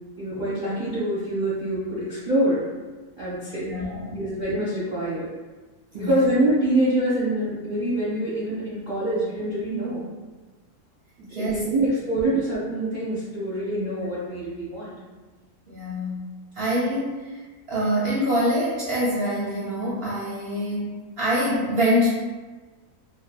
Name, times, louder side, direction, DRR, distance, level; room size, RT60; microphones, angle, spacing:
voice 1, 0.2-2.7 3.2-3.7 4.1-5.3 5.9-10.0 11.2-14.9, right 1 dB, 45° right, -11 dB, 0.7 m, -25 dB
voice 2, 3.6-4.2 5.9-6.1 11.3-11.6 12.3-12.4 15.7-16.2 16.5-22.1, equal, 85° right, -7 dB, 0.5 m, -25 dB
3.2 x 2.2 x 2.3 m, 1.3 s
omnidirectional pair, 1.7 m